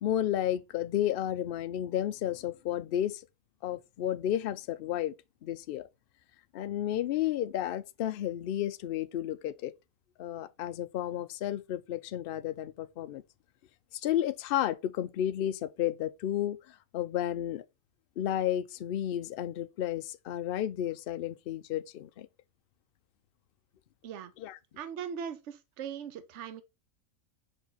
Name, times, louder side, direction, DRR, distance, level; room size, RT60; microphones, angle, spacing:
voice 1, 0.0-3.2 3.6-5.1 5.4-5.8 6.5-9.7 10.2-13.2 14.0-16.6 16.9-17.6 18.2-22.3 24.4-24.6, left 11 dB, 75° left, 0.5 m, -32 dB
voice 2, 24.8-26.6, right 7 dB, 60° right, 1.0 m, -39 dB
5.4 x 4.6 x 4.0 m
omnidirectional pair, 1.5 m